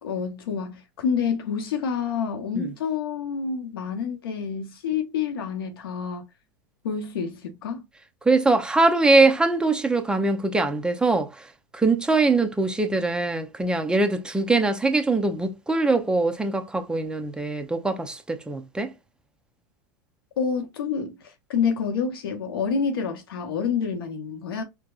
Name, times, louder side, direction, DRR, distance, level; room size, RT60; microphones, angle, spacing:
voice 1, 0.0-6.2 6.8-7.8 20.4-24.6, left 6 dB, 85° left, 0.9 m, -28 dB
voice 2, 8.2-11.5 11.7-18.9, right 3 dB, 5° right, 0.5 m, -22 dB
4.6 x 2.1 x 2.4 m
hypercardioid pair, 110°, 12 cm